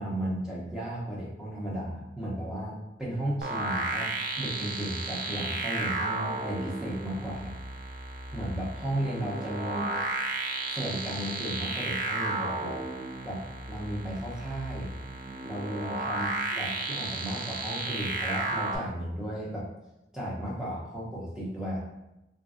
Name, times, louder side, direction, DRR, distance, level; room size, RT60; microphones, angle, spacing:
voice 1, 0.0-7.6 8.3-10.0 10.7-12.9 13.2-15.0 15.4-19.6 20.1-21.8, right 1 dB, 5° right, -6 dB, 0.6 m, -34 dB
sound 1, 3.4-18.8, right 3 dB, 50° right, 0.3 m, -33 dB
3.2 x 2.5 x 2.4 m, 0.93 s
head